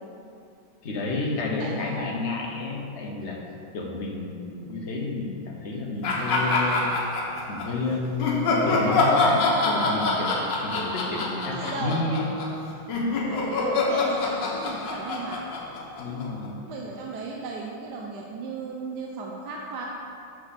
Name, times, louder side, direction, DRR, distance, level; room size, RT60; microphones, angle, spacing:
voice 1, 0.8-3.4 3.7-6.9 7.5-12.3 16.0-16.6, left 3 dB, 45° left, 0 dB, 1.1 m, -30 dB
sound 1, 6.0-7.7 8.2-16.5, left 2 dB, 65° left, 1.6 m, -26 dB
voice 2, 11.5-12.0 13.2-15.5 16.7-19.9, right 4 dB, 65° right, -1 dB, 1.2 m, -35 dB
8.4 x 7.4 x 4.2 m, 2.7 s
omnidirectional pair, 2.1 m